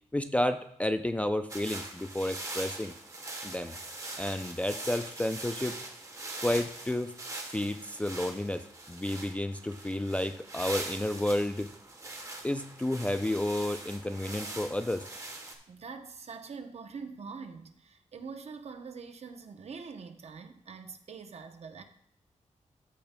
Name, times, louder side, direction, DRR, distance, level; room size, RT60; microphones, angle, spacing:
voice 1, 0.1-2.9 3.4-3.7 4.2-5.8 6.4-7.1 7.5-8.6 8.9-11.7 12.4-15.1, left 1 dB, 10° left, 8 dB, 0.3 m, -31 dB
sound 1, 1.5-15.5, right 2 dB, 25° right, 1.0 m, -42 dB
voice 2, 15.7-21.8, right 5 dB, 55° right, 7 dB, 0.7 m, -44 dB
14.0 x 6.8 x 2.2 m, 0.73 s
wide cardioid pair, 170°, 13 cm